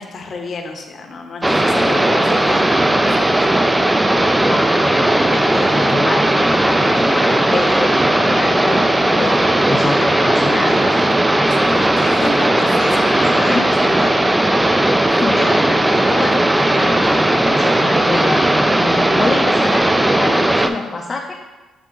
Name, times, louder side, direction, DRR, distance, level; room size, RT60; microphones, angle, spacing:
voice 1, 0.0-3.5 11.4-14.6 15.1-15.2, left 3 dB, 50° left, 3 dB, 0.9 m, -30 dB
sound 1, 1.4-20.7, right 1 dB, 10° right, 0.4 m, -16 dB
voice 2, 4.4-11.0 13.2-13.9 15.2-21.3, left 3 dB, 35° left, 0 dB, 0.6 m, -26 dB
7.3 x 3.6 x 3.7 m, 1.2 s
cardioid pair, 90°, 0 cm